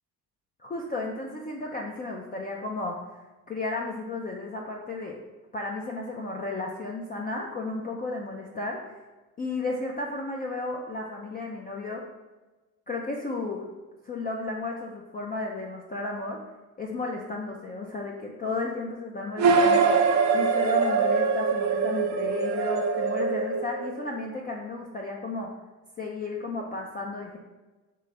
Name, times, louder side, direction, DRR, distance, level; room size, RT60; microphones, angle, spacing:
voice 1, 0.6-5.2 5.5-9.0 9.4-12.0 12.9-13.7 14.0-16.4 16.8-25.5 26.0-27.4, left 3 dB, 20° left, -1 dB, 0.4 m, -33 dB
sound 1, 19.4-24.2, right 5 dB, 35° right, 0.5 m, -23 dB
3.8 x 3.3 x 3.2 m, 1.2 s
hypercardioid pair, 60°, 47 cm